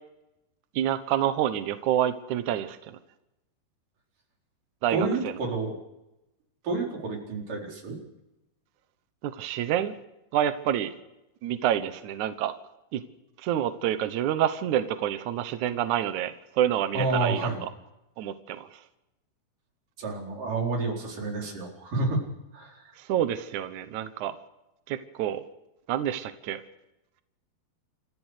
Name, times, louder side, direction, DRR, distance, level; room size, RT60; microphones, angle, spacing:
voice 1, 0.7-3.0 4.8-5.1 9.2-9.9 10.3-10.9 11.4-12.5 12.9-13.0 13.4-17.7 18.2-18.8 23.0-24.4 24.9-25.4 25.9-26.6, right 11 dB, 80° right, 10 dB, 1.7 m, -28 dB
voice 2, 4.9-5.8 6.6-8.0 16.9-17.6 20.0-22.3 22.5-23.0, right 3 dB, 50° right, 0 dB, 5.7 m, -29 dB
29.0 x 14.5 x 6.6 m, 0.93 s
omnidirectional pair, 5.1 m